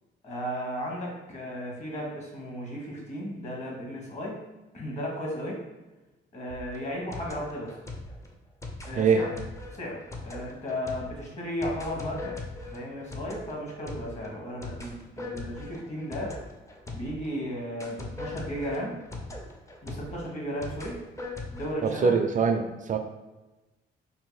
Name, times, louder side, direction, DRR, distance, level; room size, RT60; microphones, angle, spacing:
voice 1, 0.2-4.4 4.7-5.6 6.3-7.7 8.9-9.3 9.7-16.4 16.9-19.0 19.8-21.0 21.5-22.2, equal, 35° left, -2 dB, 1.2 m, -35 dB
sound 1, 6.5-17.4 17.8-21.7, left 2 dB, 15° left, 0.5 m, -40 dB
voice 2, 8.9-9.2 21.8-23.0, right 5 dB, 40° right, 6 dB, 0.4 m, -23 dB
2.7 x 2.6 x 3.9 m, 1.1 s
cardioid pair, 90°, 20 cm